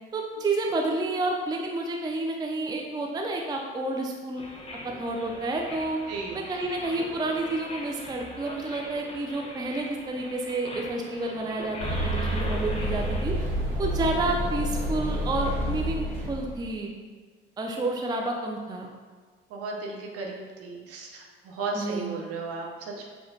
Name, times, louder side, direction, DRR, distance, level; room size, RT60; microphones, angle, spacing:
voice 1, 0.1-4.4 4.8-6.0 6.3-13.3 13.8-16.9 17.6-18.9 21.7-22.1, right 2 dB, 15° right, 1 dB, 0.5 m, -30 dB
sound 1, 4.4-13.2, left 1 dB, 20° left, 1.2 m, -40 dB
voice 2, 6.1-6.5 19.5-23.1, right 3 dB, 55° right, -1 dB, 1.0 m, -35 dB
sound 2, 11.8-16.7, equal, 80° right, 1.3 m, -29 dB
6.6 x 2.8 x 2.8 m, 1.5 s
figure-of-eight pair, 55°, 29 cm